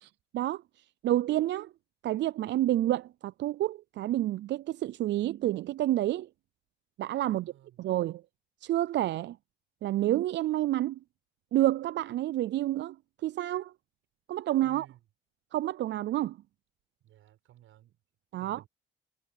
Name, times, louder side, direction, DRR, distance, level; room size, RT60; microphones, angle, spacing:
voice 1, 0.0-1.7 2.0-6.3 7.0-7.5 7.8-8.2 8.6-9.4 9.8-11.0 11.5-13.0 13.2-13.7 14.3-14.9 15.5-16.4 18.3-18.6, right 14 dB, 65° right, 0.4 m, -29 dB
voice 2, 7.2-7.8 14.6-15.0 17.0-18.0 18.3-18.7, right 13 dB, 85° right, 7.3 m, -56 dB
cardioid pair, 90°, 20 cm